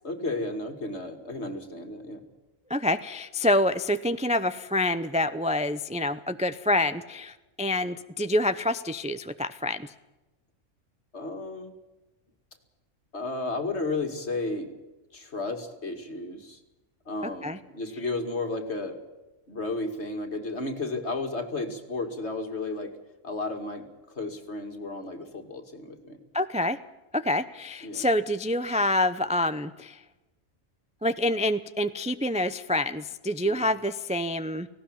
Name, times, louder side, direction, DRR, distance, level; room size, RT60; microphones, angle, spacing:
voice 1, 0.0-2.2 11.1-11.7 13.1-14.7 15.1-16.6 17.1-19.0 19.5-23.0 23.2-26.2 27.8-28.1 33.4-33.7, left 2 dB, 55° left, 5 dB, 2.6 m, -33 dB
voice 2, 2.7-9.9 17.4-17.6 26.3-26.8 27.1-30.0 31.0-34.7, left 1 dB, 10° right, 11 dB, 0.4 m, -27 dB
18.5 x 17.5 x 8.9 m, 1.1 s
omnidirectional pair, 1.3 m